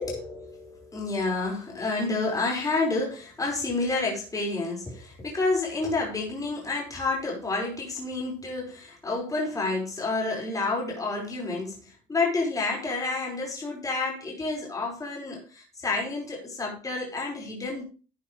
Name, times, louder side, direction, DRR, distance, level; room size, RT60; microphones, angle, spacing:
voice 1, 0.0-17.8, left 3 dB, 20° left, 5.3 m, -29 dB
14.0 x 9.3 x 3.3 m
cardioid pair, 110°, 17 cm